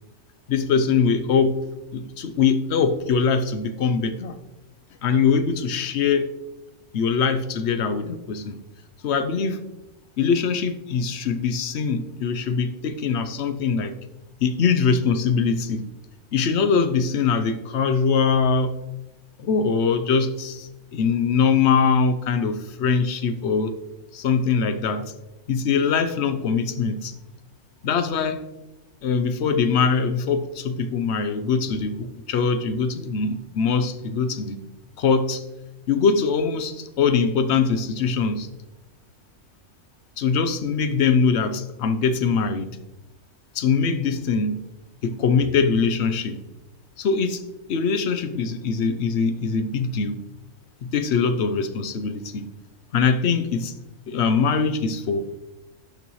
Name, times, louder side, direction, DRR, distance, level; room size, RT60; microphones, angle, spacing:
voice 1, 0.5-1.6 1.9-4.4 5.0-6.3 6.9-8.6 9.0-9.6 10.2-13.9 14.4-15.9 16.3-18.8 19.4-23.7 24.1-25.1 25.5-27.1 27.8-28.4 29.0-34.6 35.0-35.4 35.9-38.5 40.2-42.8 43.5-44.6 45.0-46.4 47.0-47.4 47.7-50.2 50.8-52.5 52.9-53.7 54.1-55.2, left 5 dB, 60° left, 10 dB, 0.9 m, -22 dB
11.5 x 6.7 x 3.1 m, 1.0 s
omnidirectional pair, 1.4 m